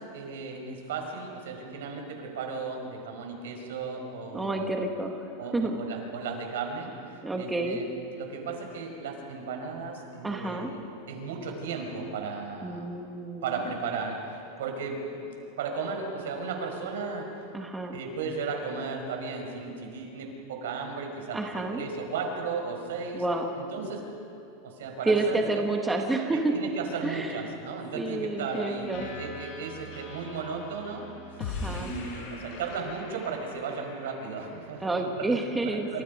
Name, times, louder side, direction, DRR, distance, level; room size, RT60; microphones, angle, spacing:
voice 1, 0.1-4.7 5.4-7.9 8.1-12.9 13.4-17.5 17.9-23.2 23.6-24.0 24.6-25.6 26.3-31.1 31.6-35.4 35.7-36.0, right 4 dB, 85° right, 3 dB, 5.4 m, -35 dB
voice 2, 4.3-5.8 7.2-7.8 10.2-10.7 12.6-13.6 17.5-18.0 21.3-21.8 23.1-23.5 25.0-26.5 27.0-27.4 27.9-29.1 31.4-31.9 34.8-36.0, right 2 dB, 5° right, 2 dB, 1.3 m, -29 dB
sound 1, 28.4-34.6, left 3 dB, 50° left, 4.8 m, -41 dB
28.0 x 26.0 x 5.3 m, 2.7 s
supercardioid pair, 175°, 0 cm